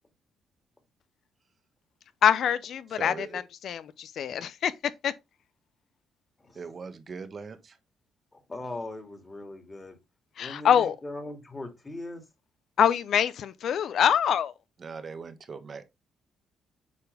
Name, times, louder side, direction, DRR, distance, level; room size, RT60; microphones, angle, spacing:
voice 1, 2.2-3.1 3.6-4.7 5.0-5.1 10.4-10.9 12.8-14.5, left 9 dB, 65° left, 0.7 m, -24 dB
voice 2, 2.9-3.4 4.3-4.4 6.5-7.8 14.8-15.8, right 5 dB, 45° right, 1.4 m, -40 dB
voice 3, 8.3-10.0 10.4-12.2, left 2 dB, 20° left, 2.5 m, -40 dB
8.5 x 4.4 x 3.5 m
cardioid pair, 90°, 0 cm